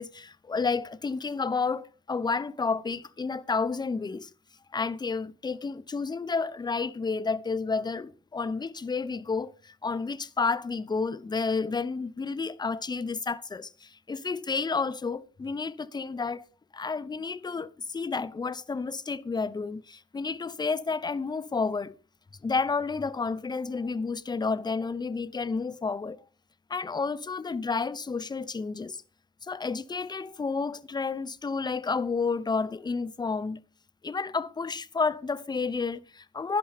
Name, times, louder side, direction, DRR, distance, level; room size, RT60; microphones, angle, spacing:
voice 1, 0.0-4.3 4.7-16.4 16.7-21.9 22.4-26.2 26.7-29.0 29.4-33.6 34.0-36.6, left 4 dB, 20° left, 0.6 m, -31 dB
11.5 x 11.0 x 3.4 m
cardioid pair, 90°, 20 cm